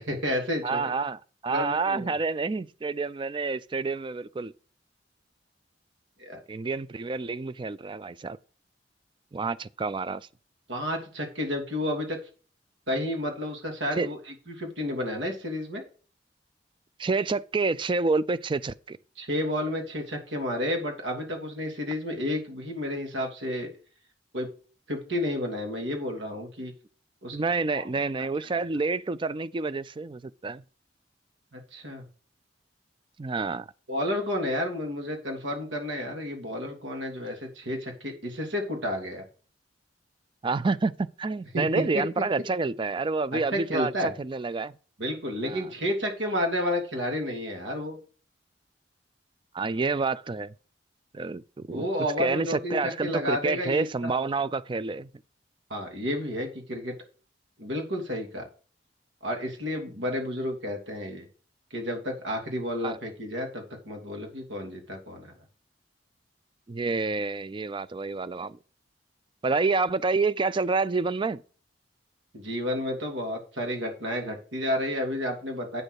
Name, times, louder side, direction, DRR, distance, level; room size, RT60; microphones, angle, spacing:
voice 1, 0.0-0.8 1.5-2.1 6.2-6.4 10.7-12.2 12.9-14.2 14.5-15.8 19.2-23.7 24.3-24.5 24.9-26.7 27.2-27.4 27.7-27.8 31.5-32.0 33.9-39.2 41.5-42.0 43.3-44.1 45.0-48.0 51.7-54.1 55.7-56.9 57.6-58.5 59.2-61.2 61.7-65.3 72.3-75.8, left 1 dB, 85° right, 2.8 m, -31 dB
voice 2, 0.6-4.5 6.5-8.4 9.3-10.3 13.9-14.1 17.0-19.0 27.3-30.6 33.2-33.7 40.4-44.7 45.4-45.7 49.5-50.5 51.1-51.9 52.2-55.1 62.8-63.0 66.7-68.6 69.4-71.4, right 3 dB, 25° right, 0.4 m, -28 dB
8.7 x 6.6 x 4.8 m
head